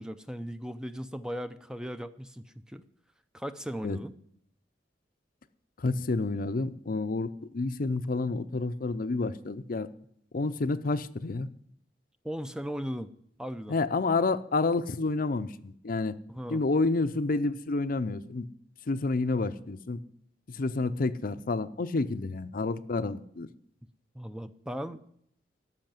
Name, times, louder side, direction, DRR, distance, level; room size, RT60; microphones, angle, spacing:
voice 1, 0.0-2.8 3.3-4.1 12.2-13.1 13.4-13.8 16.3-16.6 24.1-25.0, equal, 5° right, 10 dB, 0.5 m, -37 dB
voice 2, 5.8-9.9 10.3-11.5 13.7-16.1 16.5-18.5 18.9-20.0 20.5-23.5, left 3 dB, 50° left, 12 dB, 0.6 m, -29 dB
13.5 x 5.7 x 9.0 m, 0.68 s
head